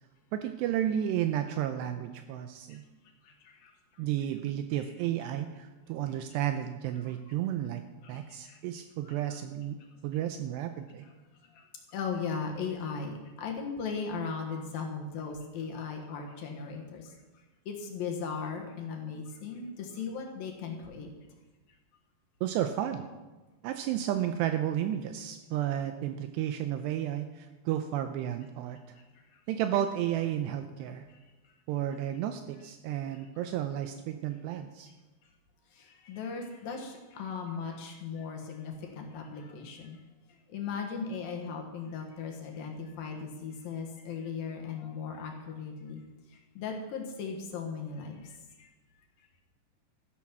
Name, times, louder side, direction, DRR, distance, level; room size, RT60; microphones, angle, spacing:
voice 1, 0.3-2.8 4.0-7.8 8.1-9.8 10.0-11.0 22.4-23.1 23.6-29.0 29.5-31.0 31.7-34.9, right 11 dB, 80° right, 7 dB, 2.7 m, -32 dB
voice 2, 3.2-3.7 8.0-9.1 11.0-11.1 11.5-11.6 11.9-17.1 17.7-21.1 28.9-29.0 29.3-29.4 31.1-31.2 31.4-31.5 33.1-33.2 35.7-40.0 40.5-46.0 46.3-48.7, left 5 dB, 65° left, 1 dB, 2.8 m, -38 dB
13.5 x 10.0 x 6.0 m, 1.2 s
omnidirectional pair, 5.1 m